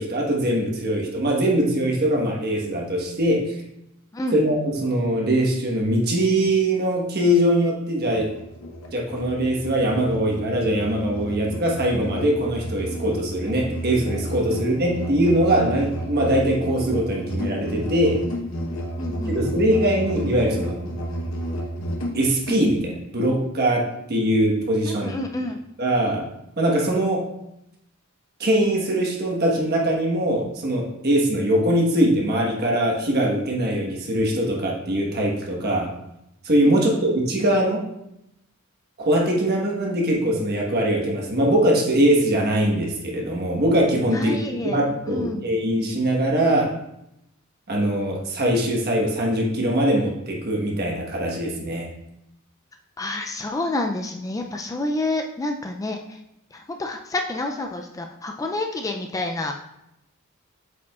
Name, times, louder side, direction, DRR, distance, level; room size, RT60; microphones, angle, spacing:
voice 1, 0.0-3.5 4.3-8.3 8.9-18.3 19.3-20.9 22.1-25.2 25.8-26.2 26.6-27.2 28.4-35.9 36.4-37.8 39.0-46.7 47.7-51.9, right 1 dB, 50° right, -1 dB, 1.3 m, -22 dB
Musical instrument, 8.0-22.6, right 1 dB, 75° left, 1.0 m, -31 dB
voice 2, 19.0-19.4 24.9-25.6 36.6-37.1 44.1-45.5 53.0-56.2 56.5-59.5, left 2 dB, 15° left, 3 dB, 0.3 m, -29 dB
8.0 x 4.9 x 2.4 m, 0.83 s
head